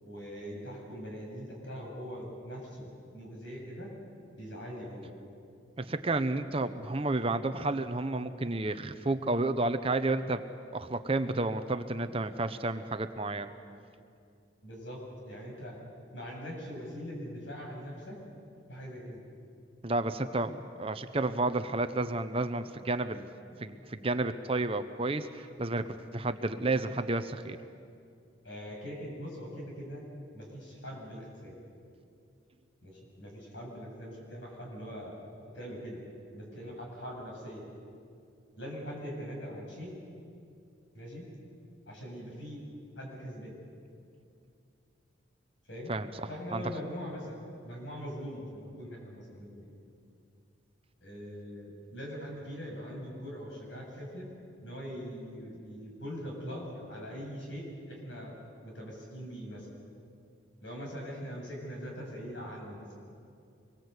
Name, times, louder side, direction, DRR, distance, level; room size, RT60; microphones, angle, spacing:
voice 1, 0.0-3.9 4.4-5.1 14.6-15.8 16.1-18.2 18.7-19.2 28.4-30.0 30.3-31.6 32.8-35.1 35.5-36.0 36.3-37.7 38.6-39.9 40.9-41.3 41.9-42.7 42.9-43.6 45.7-45.9 46.3-49.7 51.0-54.3 54.6-58.3 58.6-59.7 60.6-62.9, equal, 75° left, -1 dB, 7.5 m, -42 dB
voice 2, 5.8-10.4 10.7-13.5 19.8-23.3 23.6-27.6 45.9-46.1 46.5-46.6, right 2 dB, 30° right, 10 dB, 0.8 m, -31 dB
25.5 x 22.0 x 8.2 m, 2.5 s
head